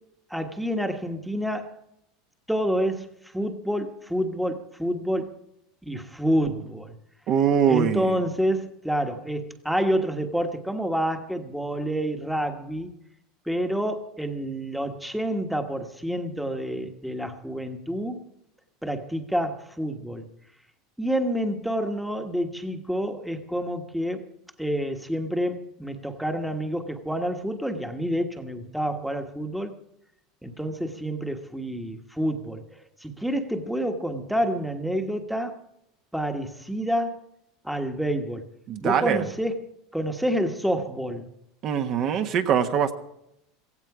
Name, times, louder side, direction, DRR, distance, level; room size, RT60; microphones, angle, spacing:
voice 1, 0.3-1.7 2.5-5.3 5.8-6.9 7.7-12.9 13.5-18.2 18.8-20.3 21.0-24.2 24.6-29.7 30.4-35.5 36.1-37.2 37.6-38.4 38.8-39.6 39.9-41.3, equal, ahead, 5 dB, 1.3 m, -28 dB
voice 2, 7.3-8.2 38.7-39.2 41.6-42.9, right 8 dB, 45° right, 6 dB, 1.3 m, -23 dB
16.5 x 16.0 x 4.9 m, 0.81 s
supercardioid pair, 135°, 0 cm